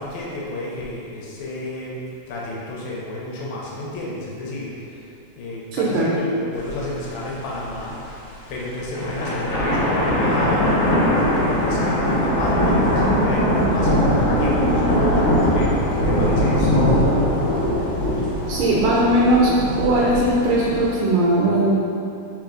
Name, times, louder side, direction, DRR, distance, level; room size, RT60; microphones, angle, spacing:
voice 1, 0.0-2.0 2.3-4.8 5.4-8.0 8.5-16.8, left 2 dB, 75° left, -5 dB, 1.7 m, -31 dB
voice 2, 5.7-6.1 18.5-19.5 19.8-21.7, right 1 dB, 80° right, -6 dB, 2.3 m, -18 dB
sound 1, 6.7-6.8 7.1-7.2 7.7-8.1 8.8-20.9, equal, 60° left, 1.5 m, -20 dB
4.7 x 4.3 x 2.5 m, 2.8 s
omnidirectional pair, 3.9 m